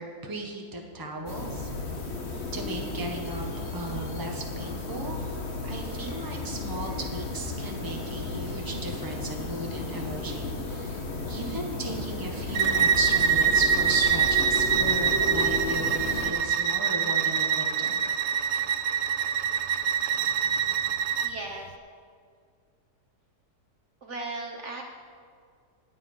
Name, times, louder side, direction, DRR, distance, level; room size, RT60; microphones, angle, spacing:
voice 1, 0.0-1.7 2.5-5.2 5.6-18.0, right 2 dB, 15° right, 1 dB, 1.3 m, -36 dB
sound 1, 1.3-16.3, left 3 dB, 45° left, 1.5 m, -34 dB
Bowed string instrument, 12.5-21.3, right 7 dB, 85° right, 1.2 m, -25 dB
sound 2, 13.3-17.1, left 1 dB, 85° left, 5.1 m, -37 dB
voice 2, 21.2-21.7 24.0-24.8, right 2 dB, 50° right, 0 dB, 1.3 m, -36 dB
19.5 x 7.7 x 5.6 m, 2.1 s
omnidirectional pair, 1.8 m